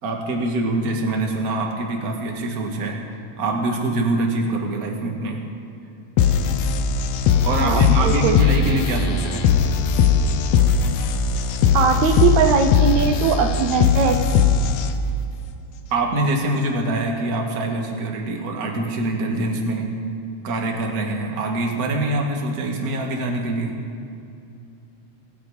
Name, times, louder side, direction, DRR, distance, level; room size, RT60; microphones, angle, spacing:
voice 1, 0.0-3.0 3.4-5.4 7.4-9.5 15.9-19.9 20.4-23.7, right 2 dB, 35° right, 1 dB, 1.8 m, -24 dB
sound 1, 6.2-15.2, left 6 dB, 75° left, 2.1 m, -19 dB
voice 2, 7.6-8.4 11.7-14.2, right 6 dB, 75° right, 5 dB, 2.1 m, -20 dB
25.5 x 8.9 x 4.9 m, 2.6 s
omnidirectional pair, 3.3 m